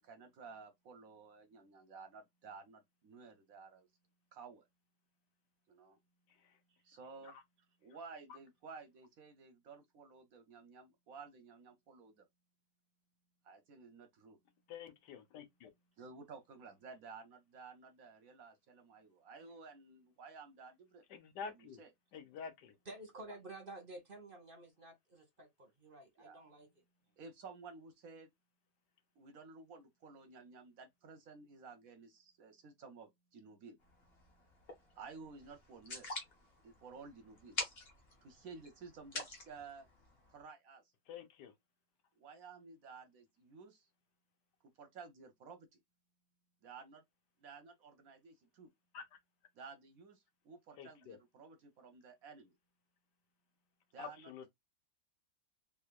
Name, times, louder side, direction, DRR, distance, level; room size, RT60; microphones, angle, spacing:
voice 1, 0.0-3.9 4.3-4.7 5.7-6.0 6.7-7.4 7.8-12.3 13.4-14.4 16.0-21.0 21.4-21.9 26.2-26.5 27.2-28.3 29.2-33.8 34.9-36.1 36.6-37.6 38.2-39.9 40.3-40.9 42.2-43.9 44.8-45.8 46.6-47.0 47.4-48.7 49.5-52.5 53.9-54.3, right 4 dB, 65° right, 1.0 m, -54 dB
voice 2, 14.7-15.7 21.1-21.8 22.1-22.7 41.1-41.5 48.9-49.1 50.8-51.2 54.0-54.4, left 6 dB, 75° left, 1.3 m, -48 dB
voice 3, 22.9-26.7, right 2 dB, 40° right, 0.9 m, -51 dB
sound 1, 33.8-40.4, left 2 dB, 40° left, 1.2 m, -47 dB
3.5 x 3.3 x 2.3 m
omnidirectional pair, 1.9 m